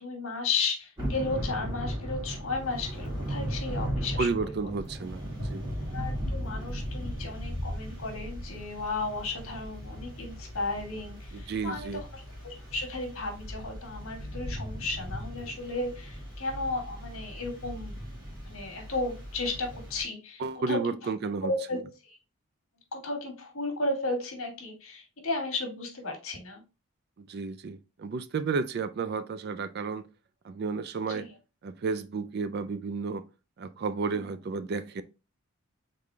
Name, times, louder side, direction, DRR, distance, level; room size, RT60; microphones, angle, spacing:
voice 1, 0.0-4.5 5.9-18.0 18.5-20.4 20.7-21.0 21.4-22.2 22.9-26.6 31.1-31.3 34.1-34.3, left 3 dB, 70° left, 1.4 m, -34 dB
Thunder / Rain, 1.0-20.0, equal, 20° right, 1.9 m, -37 dB
voice 2, 4.2-5.7 11.3-12.0 20.4-21.5 27.2-30.1 30.4-31.3 31.6-33.2 33.6-35.0, right 4 dB, 45° right, 0.3 m, -32 dB
3.8 x 3.7 x 3.2 m
head